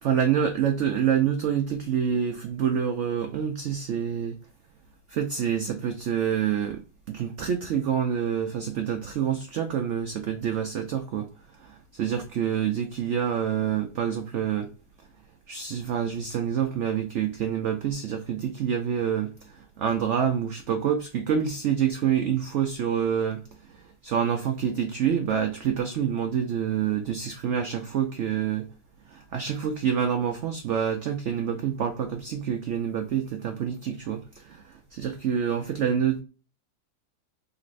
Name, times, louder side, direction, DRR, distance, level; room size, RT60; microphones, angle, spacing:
voice 1, 0.0-4.4 5.1-6.8 7.1-11.3 11.6-14.7 15.5-28.7 29.1-36.2, right 8 dB, 80° right, 0.6 m, -27 dB
4.0 x 2.5 x 3.1 m
omnidirectional pair, 1.8 m